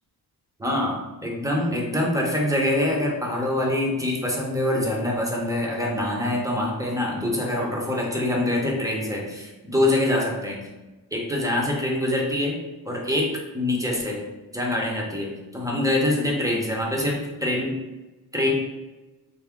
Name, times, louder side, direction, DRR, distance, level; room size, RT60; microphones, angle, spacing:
voice 1, 0.6-10.7 11.1-12.6 12.8-14.2 14.5-17.8 18.3-18.5, left 1 dB, 10° right, -2 dB, 0.8 m, -25 dB
3.5 x 2.2 x 3.6 m, 1.1 s
cardioid pair, 100°, 39 cm